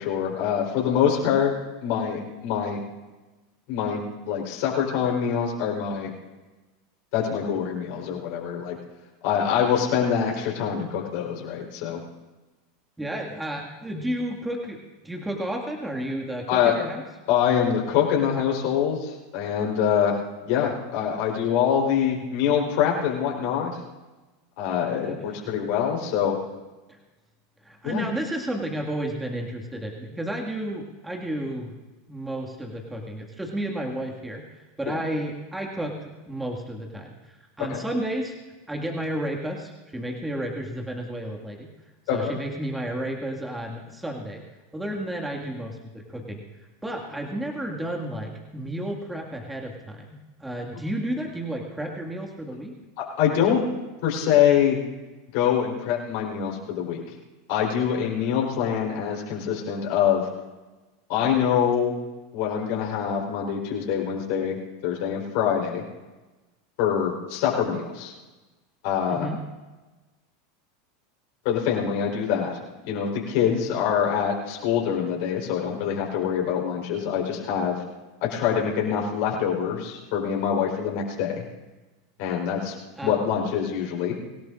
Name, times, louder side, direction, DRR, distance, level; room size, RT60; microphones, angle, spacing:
voice 1, 0.0-1.5 1.8-2.8 3.7-6.1 7.1-8.8 9.2-12.0 16.5-16.7 17.3-20.2 20.5-23.7 24.6-26.4 27.8-28.0 34.9-35.0 37.7-37.8 42.1-42.3 53.2-53.7 54.0-54.8 55.3-57.0 57.5-60.2 61.1-62.0 62.3-64.6 64.8-65.8 66.8-68.1 68.8-69.3 71.4-72.6 72.9-77.8 78.2-81.4 82.2-82.7 83.0-84.1, left 8 dB, 60° left, -2 dB, 4.1 m, -24 dB
voice 2, 13.0-17.0 25.0-25.5 26.9-27.0 27.6-31.7 32.1-34.4 34.8-38.3 38.7-41.7 42.1-44.4 44.7-46.4 46.8-50.1 50.4-52.7 69.1-69.4 83.0-83.2, right 1 dB, 10° right, 0 dB, 2.1 m, -32 dB
25.5 x 17.0 x 2.6 m, 1.2 s
hypercardioid pair, 85°, 0 cm